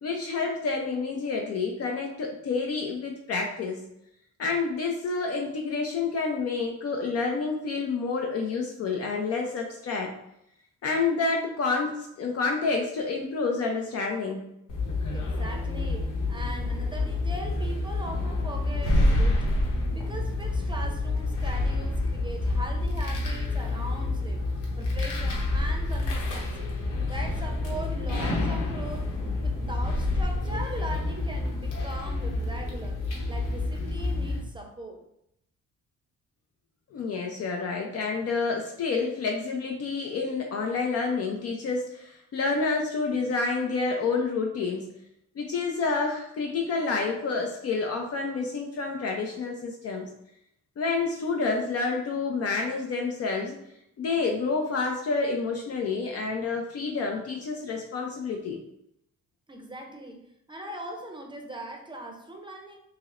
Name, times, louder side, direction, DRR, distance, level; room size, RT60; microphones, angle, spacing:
voice 1, 0.0-3.8 4.4-10.1 10.8-14.5 36.9-44.9 45.4-50.1 50.8-53.5 54.0-58.6, left 4 dB, 55° left, 1 dB, 0.6 m, -29 dB
sound 1, 14.7-34.4, left 2 dB, 85° left, 1.0 m, -28 dB
voice 2, 15.1-19.7 20.0-24.4 24.8-26.7 27.1-29.1 29.4-33.0 33.3-35.0 59.5-62.8, right 1 dB, 15° right, 2 dB, 0.6 m, -40 dB
5.5 x 2.1 x 2.5 m, 0.77 s
cardioid pair, 90°, 30 cm